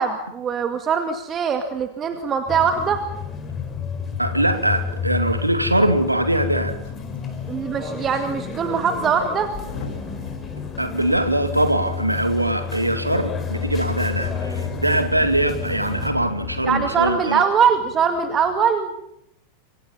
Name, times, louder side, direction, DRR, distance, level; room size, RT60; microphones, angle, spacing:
voice 1, 0.0-3.0 7.5-9.5 16.7-18.9, right 6 dB, 25° right, 7 dB, 2.2 m, -22 dB
sound 1, 2.5-16.1, left 6 dB, 20° left, 4.6 m, -30 dB
voice 2, 4.2-6.7 10.8-17.4, right 1 dB, 85° right, 8 dB, 2.5 m, -22 dB
Motor vehicle (road) / Engine starting / Accelerating revving vroom, 6.8-6.9 7.1-7.4 8.0-8.1 9.4-17.2, left 5 dB, 50° left, 7.2 m, -37 dB
sound 2, 6.9-18.6, right 2 dB, 50° right, 7.0 m, -42 dB
28.5 x 24.0 x 5.7 m, 0.74 s
figure-of-eight pair, 90°, 0 cm